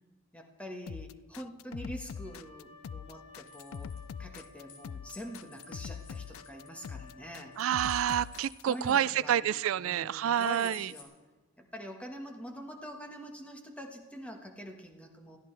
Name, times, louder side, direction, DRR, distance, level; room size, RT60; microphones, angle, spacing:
voice 1, 0.3-3.9 4.2-7.5 8.7-11.1 11.6-15.4, equal, 5° left, 2 dB, 1.5 m, -45 dB
sound 1, 0.9-8.6, left 7 dB, 90° left, 0.4 m, -42 dB
Wind instrument woodwind instrument, 2.1-8.7, left 3 dB, 30° left, 1.1 m, -55 dB
sound 2, 3.4-4.8 5.1-7.1 7.5-9.4 10.3-11.0, left 5 dB, 65° left, 2.5 m, -53 dB
voice 2, 7.6-10.9, right 10 dB, 80° right, 18 dB, 0.3 m, -28 dB
21.0 x 14.0 x 3.4 m, 1.3 s
head